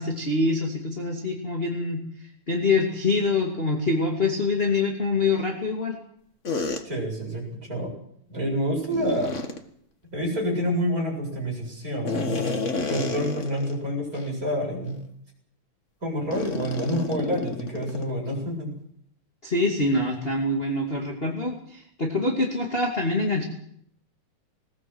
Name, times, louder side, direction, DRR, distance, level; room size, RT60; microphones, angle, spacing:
voice 1, 0.0-2.0 2.5-6.0 19.4-23.4, left 3 dB, 20° left, 2 dB, 2.3 m, -25 dB
sound 1, 6.4-6.8 8.9-9.6 12.0-13.8 14.1-14.3 14.9-15.0 16.3-18.1, left 3 dB, 35° left, 1.2 m, -30 dB
voice 2, 6.8-7.9 8.3-9.4 10.1-12.5 12.9-15.0 16.0-18.8, equal, 25° right, -1 dB, 8.0 m, -28 dB
20.0 x 19.0 x 8.0 m, 0.69 s
omnidirectional pair, 3.7 m